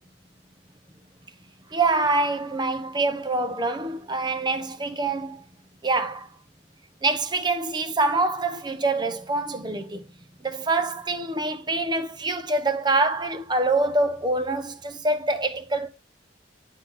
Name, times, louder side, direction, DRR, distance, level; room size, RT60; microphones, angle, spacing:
voice 1, 1.7-5.4 5.8-6.3 7.0-10.0 10.4-15.9, right 2 dB, 25° right, 1.0 m, -25 dB
12.0 x 4.1 x 4.2 m
head